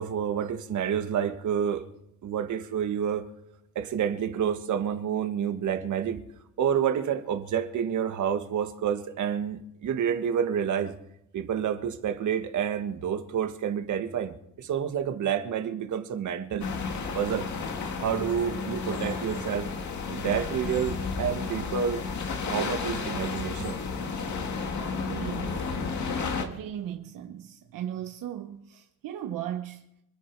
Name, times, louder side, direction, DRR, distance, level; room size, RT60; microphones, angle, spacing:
voice 1, 0.0-1.8 2.2-3.2 3.8-6.2 6.6-10.9 11.3-16.7 17.1-17.5 18.0-19.7 20.1-22.1 22.4-23.8, right 8 dB, 65° right, 1.7 m, -29 dB
sound 1, 16.6-26.4, left 4 dB, 60° left, 2.1 m, -32 dB
voice 2, 25.1-25.7 26.4-29.8, right 10 dB, 85° right, 1.1 m, -37 dB
26.5 x 10.0 x 4.8 m
cardioid pair, 145°, 32 cm